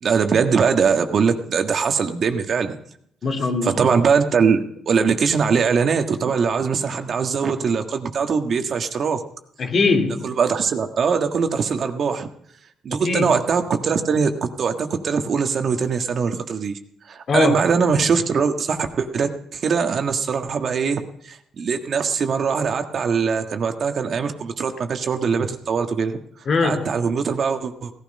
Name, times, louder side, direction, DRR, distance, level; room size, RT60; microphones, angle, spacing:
voice 1, 0.0-2.8 3.6-9.2 10.2-12.3 12.8-16.8 17.0-26.2 26.6-27.9, right 5 dB, 55° right, 1.6 m, -22 dB
voice 2, 3.2-3.8 9.6-10.3 13.0-13.3 17.3-17.6 26.5-26.9, left 4 dB, 50° left, 2.3 m, -21 dB
17.0 x 12.5 x 5.4 m
cardioid pair, 90°, 0 cm